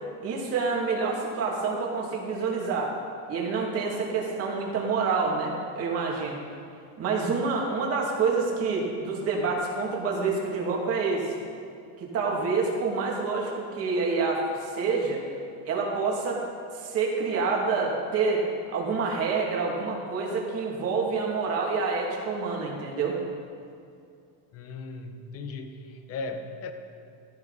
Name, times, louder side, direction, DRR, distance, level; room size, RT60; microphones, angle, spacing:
voice 1, 0.2-2.9 3.3-6.4 7.0-11.4 12.0-15.2 15.6-16.4 16.7-18.4 18.7-23.2, right 4 dB, 35° right, -1 dB, 2.6 m, -27 dB
voice 2, 24.5-26.7, left 3 dB, 35° left, 7 dB, 1.2 m, -37 dB
15.0 x 15.0 x 4.1 m, 2.4 s
cardioid pair, 165°, 40 cm